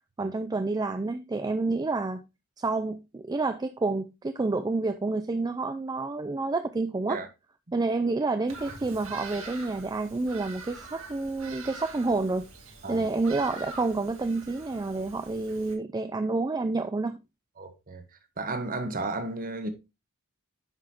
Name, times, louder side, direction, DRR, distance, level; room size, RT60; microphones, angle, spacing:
voice 1, 0.2-2.2 2.6-7.2 7.7-17.2, right 3 dB, 20° right, 0.3 m, -29 dB
Bird vocalization bird call bird song, 8.5-15.7, right 4 dB, 70° right, 2.0 m, -44 dB
voice 2, 17.6-18.0 18.4-19.7, right 2 dB, 40° right, 1.2 m, -33 dB
9.7 x 6.0 x 2.9 m
head